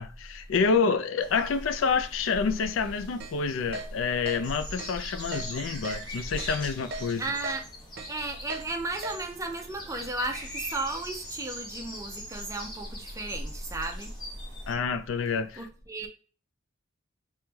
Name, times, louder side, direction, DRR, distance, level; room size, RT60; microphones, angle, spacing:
voice 1, 0.0-7.2 14.7-15.6, left 5 dB, 75° left, 0.4 m, -28 dB
sound 1, 1.2-14.7, equal, 25° left, 1.1 m, -41 dB
Keyboard (musical), 3.2-3.3 3.7-3.9 4.3-4.4 4.8-4.9 5.3-5.5 5.8-6.0 6.4-6.5 6.9-7.0 7.4-7.6 8.0-8.1 8.5-8.6 9.0-9.2, right 2 dB, 55° right, 0.7 m, -36 dB
voice 2, 7.2-7.6 8.1-14.1 15.5-16.1, right 2 dB, 15° right, 0.5 m, -34 dB
3.1 x 3.0 x 3.4 m
head